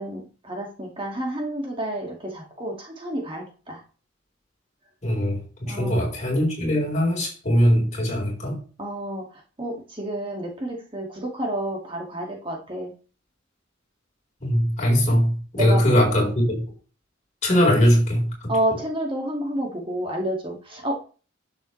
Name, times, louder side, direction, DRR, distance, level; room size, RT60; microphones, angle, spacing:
voice 1, 0.0-3.8 5.7-6.0 8.8-12.9 15.6-16.0 18.5-21.0, right 1 dB, 25° right, 2.1 m, -30 dB
voice 2, 5.0-8.6 14.4-16.6 17.4-18.5, equal, 35° left, 4.4 m, -21 dB
12.0 x 7.1 x 3.2 m
head